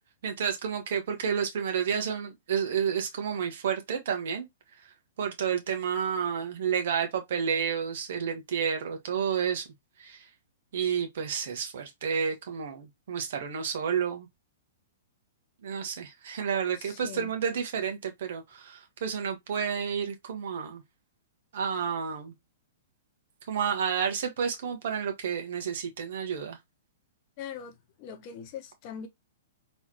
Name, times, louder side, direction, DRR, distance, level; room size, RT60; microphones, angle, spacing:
voice 1, 0.2-4.5 4.7-4.8 5.2-9.7 10.0-10.3 10.7-14.3 15.6-20.8 21.5-22.3 23.5-26.6, right 7 dB, 60° right, 1.4 m, -30 dB
voice 2, 16.8-17.3 27.4-29.1, left 8 dB, 40° left, 0.9 m, -41 dB
4.0 x 3.3 x 2.9 m
figure-of-eight pair, 110°, 0 cm